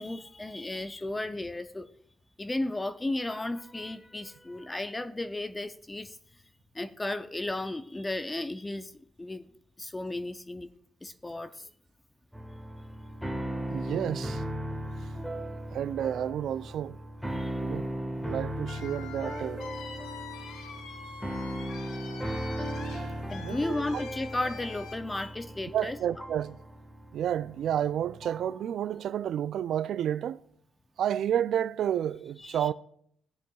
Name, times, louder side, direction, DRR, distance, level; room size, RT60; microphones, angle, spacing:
voice 1, 0.0-1.9 2.4-6.2 6.7-8.9 9.2-9.4 9.8-10.7 11.0-11.7 15.6-15.7 17.3-17.6 20.9-21.1 23.3-26.0 32.4-32.7, left 2 dB, 15° left, 0.5 m, -34 dB
sound 1, 12.3-28.6, equal, ahead, 1.4 m, -37 dB
voice 2, 13.7-14.4 15.7-17.0 17.6-17.9 18.2-19.6 22.8-23.8 25.7-26.6 27.1-30.4 31.0-32.7, right 10 dB, 70° right, 0.3 m, -31 dB
sound 2, 18.7-25.0, left 6 dB, 85° left, 1.0 m, -45 dB
16.5 x 7.5 x 2.3 m
cardioid pair, 90°, 0 cm